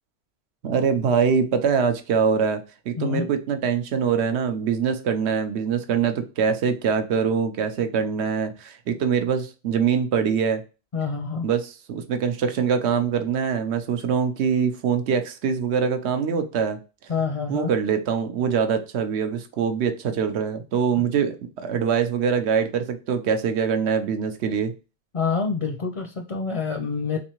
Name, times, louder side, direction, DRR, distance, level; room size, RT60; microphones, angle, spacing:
voice 1, 0.6-2.6 2.9-10.6 11.4-16.8 17.5-24.7, right 6 dB, 90° right, 8 dB, 0.9 m, -23 dB
voice 2, 3.0-3.3 10.9-11.5 17.1-17.7 21.0-21.1 25.1-27.2, left 5 dB, 45° left, 3 dB, 0.5 m, -27 dB
3.6 x 3.1 x 2.9 m, 0.32 s
omnidirectional pair, 1.1 m